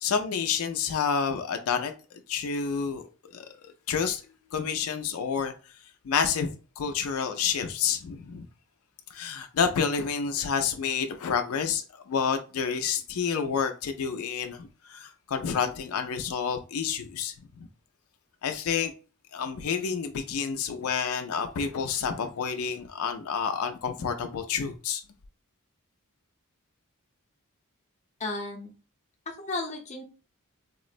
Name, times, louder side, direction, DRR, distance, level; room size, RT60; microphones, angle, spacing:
voice 1, 0.0-3.0 3.3-3.5 3.9-4.2 4.5-5.5 6.0-8.5 9.1-17.7 18.4-18.9 19.3-25.0, left 6 dB, 75° left, 0.4 m, -29 dB
voice 2, 28.2-28.7 29.3-30.0, left 2 dB, 35° left, 0.6 m, -34 dB
3.6 x 2.0 x 2.4 m
head